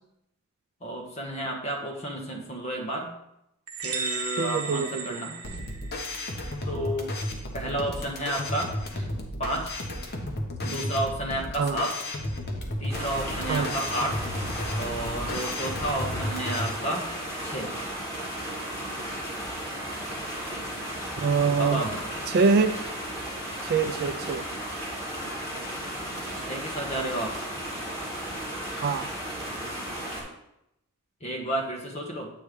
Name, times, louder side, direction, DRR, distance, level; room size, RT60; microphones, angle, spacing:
voice 1, 0.8-3.1 3.8-5.3 6.6-7.1 7.5-9.1 9.4-9.7 10.6-12.0 12.8-14.2 14.7-17.1 17.4-17.7 21.4-22.1 26.4-27.3 31.2-32.3, right 1 dB, 30° left, 0 dB, 1.3 m, -31 dB
sound 1, 3.7-6.2, right 5 dB, 80° right, 0.8 m, -34 dB
voice 2, 4.4-5.2 11.6-11.8 13.5-13.7 21.2-21.8 22.3-22.7 23.6-24.4 28.8-29.1, right 5 dB, 45° right, 9 dB, 0.4 m, -24 dB
sound 2, 5.4-16.7, left 1 dB, 50° left, 1.0 m, -33 dB
sound 3, 12.9-30.2, right 1 dB, 15° left, 2.1 m, -35 dB
8.4 x 3.2 x 5.0 m, 0.82 s
head